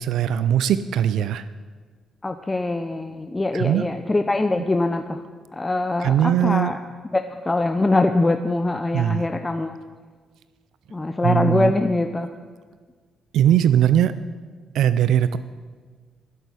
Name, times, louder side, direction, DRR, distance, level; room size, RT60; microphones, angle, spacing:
voice 1, 0.0-1.5 3.5-3.9 6.0-6.7 8.9-9.3 11.2-11.7 13.3-14.2 14.7-15.4, right 10 dB, 80° right, 14 dB, 0.4 m, -20 dB
voice 2, 2.2-5.2 5.5-6.8 7.1-9.8 10.9-12.3, left 2 dB, 20° left, 7 dB, 0.7 m, -23 dB
11.5 x 8.0 x 9.7 m, 1.5 s
cardioid pair, 90°, 0 cm